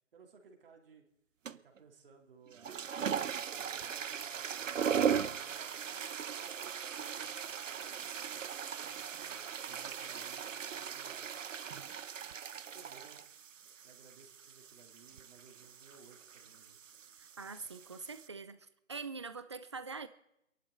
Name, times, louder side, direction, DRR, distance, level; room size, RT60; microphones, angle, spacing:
voice 1, 0.1-1.1 1.5-4.8 5.3-7.2 7.7-11.4 12.7-13.2 13.8-16.8, right 5 dB, 45° right, 3 dB, 2.9 m, -60 dB
sound 1, 1.5-1.8 2.5-18.3, right 7 dB, 75° right, 0.7 m, -39 dB
voice 2, 17.2-20.1, right 4 dB, 25° right, 12 dB, 0.5 m, -44 dB
27.5 x 11.5 x 3.9 m, 0.82 s
figure-of-eight pair, 155°, 38 cm